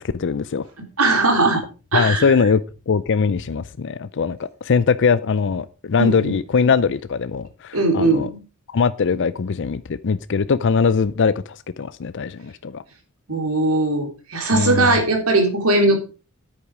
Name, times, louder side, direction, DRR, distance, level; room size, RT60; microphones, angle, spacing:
voice 1, 0.0-0.6 1.9-2.6 2.9-8.3 8.7-12.8 14.5-14.9, left 5 dB, 60° left, 0.5 m, -21 dB
voice 2, 0.8-1.6 1.9-2.3 6.0-6.4 7.7-8.4 13.3-16.0, right 2 dB, 90° right, 3.7 m, -19 dB
10.0 x 8.8 x 4.9 m
head